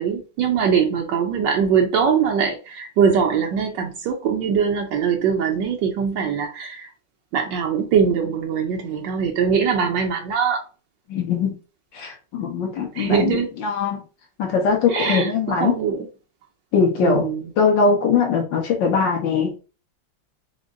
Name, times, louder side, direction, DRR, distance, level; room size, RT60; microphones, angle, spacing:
voice 1, 0.0-6.9 7.3-10.6 12.9-13.5 14.9-16.1 17.0-17.5, right 6 dB, 70° right, 1.3 m, -22 dB
voice 2, 11.1-11.6 11.9-14.0 14.4-15.7 16.7-17.3 17.6-19.5, left 5 dB, 70° left, 1.7 m, -21 dB
5.0 x 2.1 x 3.7 m
omnidirectional pair, 2.1 m